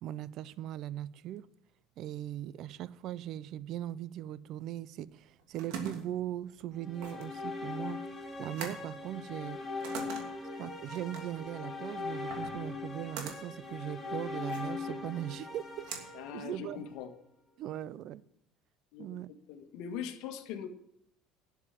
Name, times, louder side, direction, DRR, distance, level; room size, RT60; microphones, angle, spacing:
voice 1, 0.0-1.5 2.0-8.0 8.4-9.6 10.6-15.9 16.3-16.8 17.6-18.2 19.0-19.3, right 12 dB, 55° right, 0.6 m, -39 dB
sound 1, 5.1-17.1, right 6 dB, 80° right, 2.7 m, -45 dB
sound 2, 6.8-17.0, left 3 dB, 10° left, 2.8 m, -40 dB
voice 2, 16.1-17.1 18.9-19.2 19.5-20.7, left 8 dB, 70° left, 1.6 m, -41 dB
12.5 x 7.2 x 7.2 m
cardioid pair, 120°, 0 cm